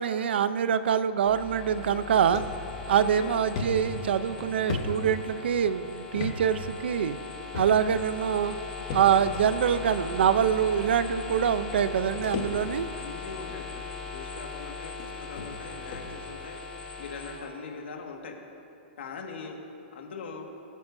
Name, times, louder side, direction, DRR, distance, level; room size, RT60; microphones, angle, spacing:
voice 1, 0.0-2.4 2.9-7.2 7.5-8.6 8.9-12.9, right 8 dB, 70° right, 13 dB, 0.6 m, -25 dB
sound 1, 1.2-17.4, left 4 dB, 10° left, 1.4 m, -39 dB
sound 2, 2.3-2.5 3.0-3.1 3.6-5.6 6.1-6.4 6.6-6.8 7.5-8.0 8.9-9.4 10.3-10.4 11.4-11.5 11.7-12.9 13.3-13.6 14.4-14.5 15.0-15.1 15.4-15.5 15.9-16.1, left 5 dB, 35° left, 1.2 m, -35 dB
voice 2, 13.0-13.8 14.1-16.6 17.0-18.4 19.0-19.6 19.9-20.5, left 5 dB, 80° left, 2 dB, 1.8 m, -41 dB
22.0 x 9.4 x 2.7 m, 2.8 s
hypercardioid pair, 175°, 6 cm